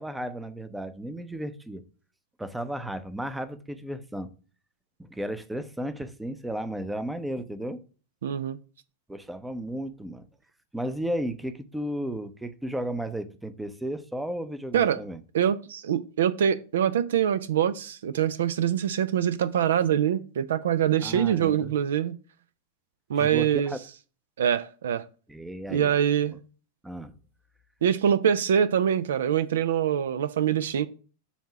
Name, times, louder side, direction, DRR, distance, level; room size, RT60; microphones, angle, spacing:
voice 1, 0.0-1.8 2.4-4.3 5.0-7.8 9.1-10.3 10.7-15.2 21.0-21.7 23.1-23.8 25.3-25.9 26.8-27.1, right 1 dB, 5° right, 0.6 m, -34 dB
voice 2, 8.2-8.6 14.7-15.0 15.3-22.2 23.1-23.7 24.4-25.1 25.7-26.4 27.8-30.9, right 9 dB, 60° right, 0.4 m, -24 dB
7.1 x 2.8 x 5.8 m
figure-of-eight pair, 90°, 0 cm